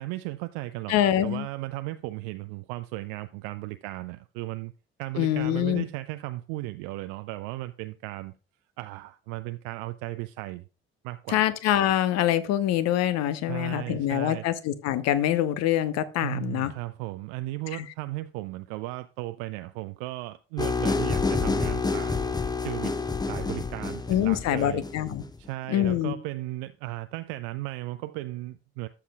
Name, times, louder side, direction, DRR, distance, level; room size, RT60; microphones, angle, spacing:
voice 1, 0.0-4.7 5.0-8.3 8.8-10.6 11.0-11.5 13.3-14.5 16.2-22.3 22.6-23.0 23.3-24.8 25.4-28.9, right 18 dB, 60° right, 0.5 m, -36 dB
voice 2, 0.9-1.5 5.2-5.8 11.3-16.7 17.7-17.8 24.1-25.2 25.7-26.1, left 12 dB, 55° left, 0.9 m, -25 dB
sound 1, 20.6-25.3, left 4 dB, 15° left, 0.8 m, -28 dB
13.0 x 7.0 x 2.4 m
figure-of-eight pair, 50°, 31 cm